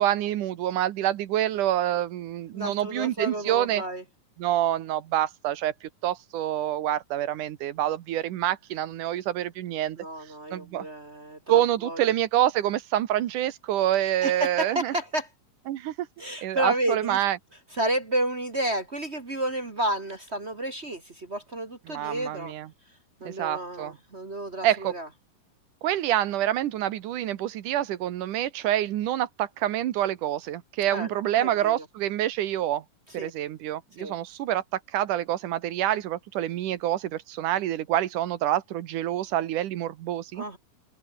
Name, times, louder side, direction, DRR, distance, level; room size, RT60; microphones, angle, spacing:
voice 1, 0.0-3.8 4.4-10.0 10.5-10.9 11.5-14.9 15.7-15.9 16.4-17.4 21.9-22.7 23.3-23.9 24.6-24.9 25.8-32.8 33.1-34.6 34.9-40.4, right 12 dB, 70° right, 2.6 m, -27 dB
voice 2, 2.5-4.0 10.0-12.0 14.0-15.3 16.2-17.2 17.7-22.5 23.2-25.1 30.9-31.1 31.3-31.8 33.2-33.3 34.0-34.1 40.3-40.6, right 1 dB, 35° right, 1.1 m, -31 dB
omnidirectional pair, 3.9 m